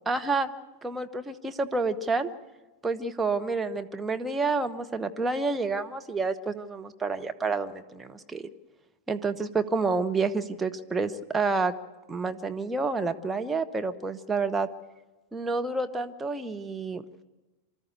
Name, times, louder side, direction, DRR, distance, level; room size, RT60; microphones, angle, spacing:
voice 1, 0.1-0.5 0.8-2.3 2.8-8.4 9.1-11.7 12.1-14.7 15.3-17.0, right 3 dB, 10° right, 6 dB, 1.0 m, -29 dB
24.5 x 13.5 x 8.3 m, 1.1 s
figure-of-eight pair, 90°, 0 cm